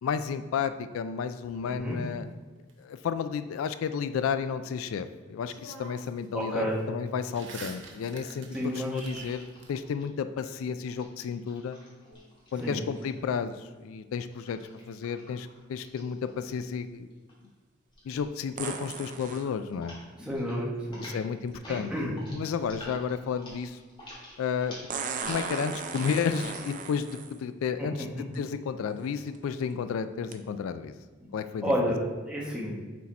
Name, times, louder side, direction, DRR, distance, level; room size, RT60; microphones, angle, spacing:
voice 1, 0.0-2.3 2.8-8.5 8.7-11.8 12.5-14.6 14.9-17.1 18.0-19.9 21.0-21.9 22.3-23.8 24.4-24.8 25.3-30.9 31.3-31.7, left 6 dB, 80° left, 11 dB, 0.3 m, -32 dB
sound 1, 1.4-2.7 4.9-5.0 5.4-6.2 6.5-9.7, right 3 dB, 60° right, 0.9 m, -48 dB
voice 2, 1.6-2.0 6.3-6.8 8.5-9.3 12.6-12.8 20.2-21.1 21.7-22.1 27.8-27.9 31.6-32.0 32.3-32.7, equal, 5° right, -4 dB, 1.1 m, -31 dB
sound 2, 8.5-10.0 10.9-13.4 14.3-16.8 17.1-17.5 17.9-18.3 18.5-18.8 19.1-20.0 20.3-20.6 20.8-26.7, left 1 dB, 25° left, 1.7 m, -49 dB
sound 3, 12.1-12.2 18.6-19.5 21.5-21.6 24.9-27.4 28.3-28.4 29.1-29.4 30.3-30.4, right 5 dB, 40° right, 0.4 m, -36 dB
6.3 x 4.2 x 4.2 m, 1.3 s
head